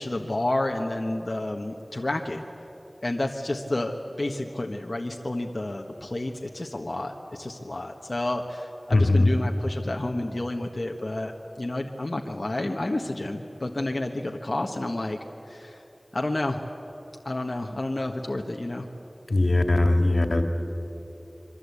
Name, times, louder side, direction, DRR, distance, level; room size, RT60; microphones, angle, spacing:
voice 1, 0.0-2.4 3.0-11.3 11.6-15.2 15.5-15.8 16.1-16.6 17.2-18.9, left 1 dB, 60° left, 2 dB, 1.4 m, -30 dB
voice 2, 8.9-9.3 19.3-20.4, left 2 dB, 85° left, 5 dB, 2.2 m, -20 dB
26.5 x 24.0 x 8.4 m, 3.0 s
wide cardioid pair, 45°, 0 cm